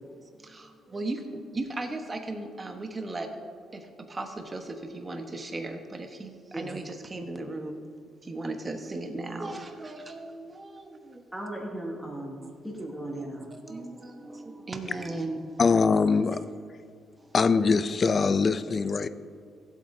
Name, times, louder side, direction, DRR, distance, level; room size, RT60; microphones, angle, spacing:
voice 1, 1.5-3.3 4.2-4.6 4.9-7.8 8.3-10.8 13.6-13.9 14.3-15.4, right 2 dB, 25° right, 1.2 m, -36 dB
voice 2, 11.3-12.4 12.6-13.5, right 1 dB, 10° right, 2.7 m, -36 dB
voice 3, 15.6-16.4 17.3-19.1, left 4 dB, 40° left, 0.4 m, -22 dB
15.5 x 8.0 x 2.7 m
cardioid pair, 90°, 0 cm